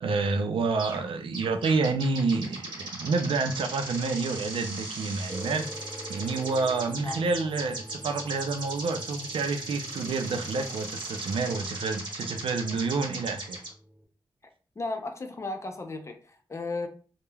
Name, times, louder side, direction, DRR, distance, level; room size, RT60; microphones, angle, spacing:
voice 1, 0.0-5.7 6.1-13.6, right 4 dB, 85° right, 0.4 m, -28 dB
sound 1, 0.8-1.1 1.3-13.7, right 2 dB, 55° right, 1.0 m, -38 dB
sound 2, 5.3-14.0, equal, 10° right, 0.6 m, -46 dB
voice 2, 14.8-16.9, left 2 dB, 35° left, 0.5 m, -35 dB
3.1 x 2.1 x 2.2 m
wide cardioid pair, 100°, 9 cm